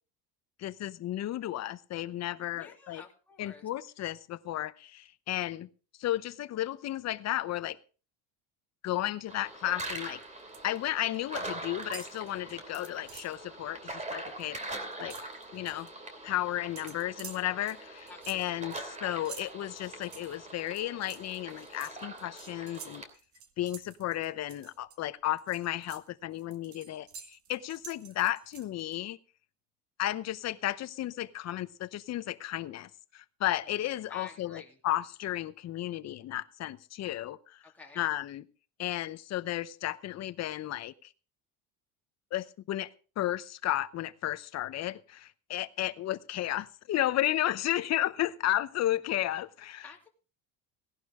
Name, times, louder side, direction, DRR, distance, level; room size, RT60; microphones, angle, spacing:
voice 1, 0.6-3.0 3.4-5.7 6.0-7.8 8.8-10.2 10.6-14.6 15.0-15.2 15.5-15.9 16.2-23.0 23.6-29.2 30.0-37.6 38.0-38.4 38.8-41.1 42.3-42.9 43.2-49.9, left 14 dB, 40° left, 14 dB, 0.8 m, -33 dB
voice 2, 2.5-3.7 18.1-18.9 33.7-34.8 37.6-38.0 49.8-50.1, left 4 dB, 5° left, -2 dB, 3.0 m, -51 dB
sound 1, 9.3-23.1, right 2 dB, 20° right, 2.7 m, -43 dB
sound 2, 10.1-10.8 11.0-11.5 11.8-13.4 13.8-14.0 14.3-15.9 16.8-25.0 25.4-29.0, right 7 dB, 45° right, 1.8 m, -49 dB
17.5 x 11.0 x 3.7 m, 0.36 s
cardioid pair, 130°, 39 cm